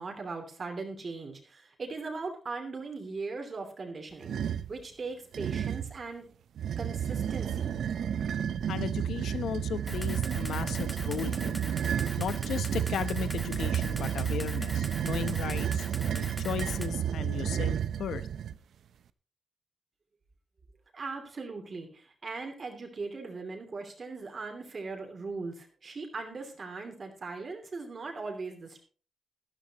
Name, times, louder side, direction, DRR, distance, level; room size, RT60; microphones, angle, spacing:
voice 1, 0.0-6.3 6.8-7.7 20.9-28.8, right 3 dB, 35° right, 3 dB, 2.9 m, -39 dB
sound 1, 4.2-4.7 5.3-6.0 6.6-18.6, right 9 dB, 70° right, 0.8 m, -31 dB
voice 2, 8.7-11.6 12.2-18.2, left 8 dB, 85° left, 13 dB, 0.9 m, -36 dB
Camera, 9.9-16.9, equal, 5° left, 1.5 m, -43 dB
14.0 x 13.0 x 3.0 m, 0.39 s
wide cardioid pair, 170°, 0 cm